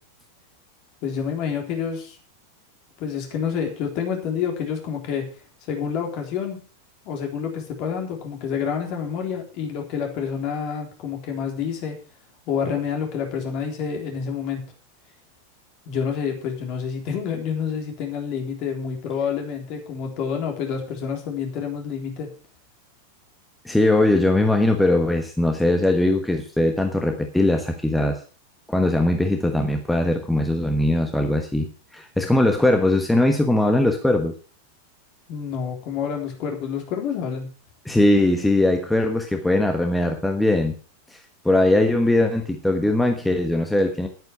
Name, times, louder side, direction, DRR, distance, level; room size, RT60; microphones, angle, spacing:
voice 1, 1.0-2.2 3.0-5.3 5.7-6.6 7.1-12.0 12.5-14.6 15.9-22.3 35.3-37.5, left 7 dB, 40° left, 2 dB, 3.6 m, -28 dB
voice 2, 23.6-28.2 28.7-34.3 37.8-40.8 41.1-41.2 41.4-44.1, left 1 dB, 5° left, 4 dB, 1.3 m, -20 dB
11.0 x 9.4 x 5.8 m, 0.38 s
figure-of-eight pair, 90°, 0 cm